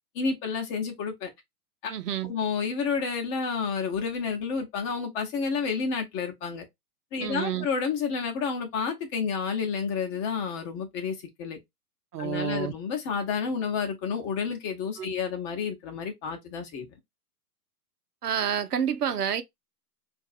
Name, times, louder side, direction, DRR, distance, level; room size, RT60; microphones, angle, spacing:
voice 1, 0.1-1.3 1.8-1.9 2.3-6.6 7.1-11.6 12.2-16.9, left 5 dB, 25° left, 1.0 m, -30 dB
voice 2, 1.9-2.3 7.2-7.7 12.1-12.7 15.0-15.1 18.2-19.4, right 9 dB, 75° right, 0.8 m, -29 dB
4.6 x 2.6 x 2.5 m
figure-of-eight pair, 115°, 46 cm